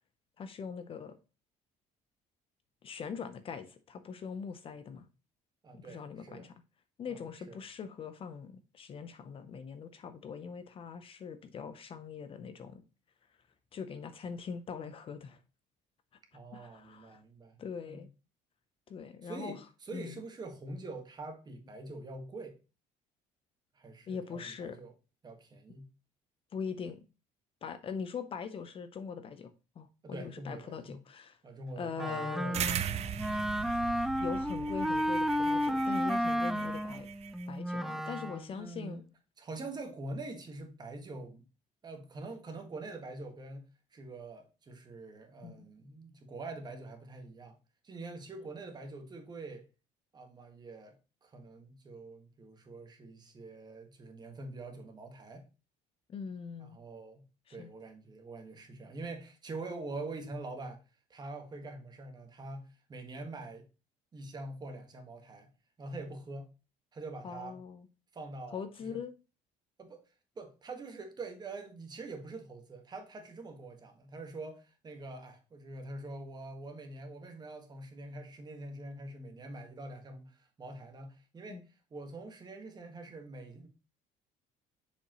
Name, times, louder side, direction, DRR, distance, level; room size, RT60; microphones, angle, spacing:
voice 1, 0.4-1.2 2.8-5.1 5.7-6.5 7.0-12.8 13.7-15.4 16.5-17.2 17.6-18.1 18.9-19.6 19.9-20.2 24.1-24.8 26.5-27.0 27.6-31.4 31.8-32.7 34.2-37.1 37.5-39.0 45.4-45.7 56.1-56.8 57.5-57.7 67.2-67.9 68.5-69.1 81.5-81.6, left 6 dB, 40° left, 0.7 m, -42 dB
voice 2, 5.6-6.5 7.1-7.2 7.5-7.6 16.3-17.6 17.8-18.1 19.2-22.6 23.7-24.9 25.2-25.9 30.0-31.0 31.4-33.2 38.5-39.0 39.4-41.5 41.8-43.6 43.9-47.6 47.8-49.7 50.1-55.4 56.6-57.2 57.5-60.8 61.1-63.7 64.1-65.5 65.8-66.5 66.9-67.6 68.1-69.0 69.8-70.0 70.3-83.7, right 2 dB, 30° right, 1.6 m, -45 dB
Wind instrument woodwind instrument, 32.0-38.5, equal, ahead, 0.4 m, -32 dB
sound 1, 32.5-37.4, right 10 dB, 50° right, 0.6 m, -39 dB
6.7 x 5.1 x 3.0 m
cardioid pair, 120°, 14 cm